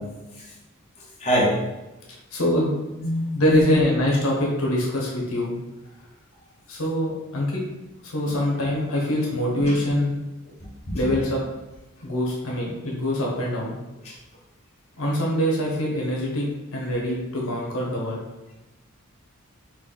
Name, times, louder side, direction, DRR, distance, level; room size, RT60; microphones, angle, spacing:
voice 1, 1.2-1.6 3.0-3.7 9.6-9.7 10.6-11.1 14.0-14.2, equal, 30° left, -7 dB, 1.1 m, -25 dB
voice 2, 2.3-2.7 3.3-5.5 6.7-7.6 8.0-10.2 10.9-11.4 12.0-13.7 15.0-16.5 16.7-18.2, left 1 dB, 75° left, -3 dB, 1.0 m, -24 dB
4.4 x 2.4 x 3.8 m, 1.0 s
head